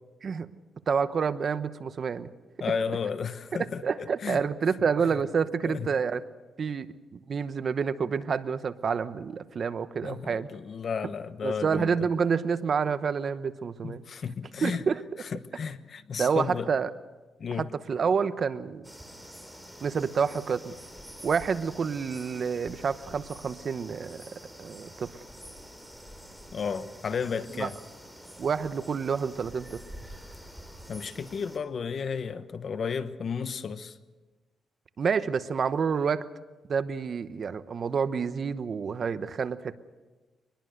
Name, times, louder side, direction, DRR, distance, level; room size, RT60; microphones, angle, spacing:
voice 1, 0.9-2.3 3.8-6.2 6.6-6.9 7.1-10.5 11.4-14.0 14.6-15.0 16.2-16.9 17.6-18.8 19.8-20.7 21.2-24.2 24.6-25.2 27.5-27.7 28.4-29.8 35.0-36.3 36.7-39.8, right 6 dB, 55° right, 0.9 m, -28 dB
voice 2, 2.6-4.4 5.0-5.1 5.6-5.9 10.0-12.0 13.8-14.8 15.2-16.7 17.4-17.7 26.5-27.8 30.9-34.0, left 6 dB, 55° left, 1.1 m, -33 dB
sound 1, 18.8-31.6, equal, ahead, 3.5 m, -47 dB
24.0 x 20.5 x 6.6 m
cardioid pair, 90°, 0 cm